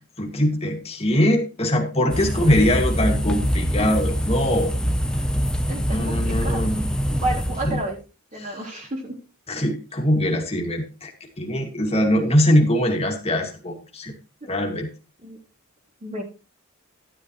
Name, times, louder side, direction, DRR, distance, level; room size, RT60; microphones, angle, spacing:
voice 1, 0.2-4.7 5.9-6.9 7.6-7.8 8.4-8.5 9.5-11.1 11.4-14.1 14.5-14.9, left 1 dB, 30° left, 2 dB, 2.2 m, -22 dB
sound 1, 2.1-7.9, equal, 5° left, 0.8 m, -24 dB
voice 2, 5.7-6.6 7.1-8.0 8.3-9.2 15.2-15.4 16.0-16.2, right 1 dB, 35° right, -2 dB, 3.6 m, -30 dB
11.5 x 11.0 x 3.2 m, 0.32 s
head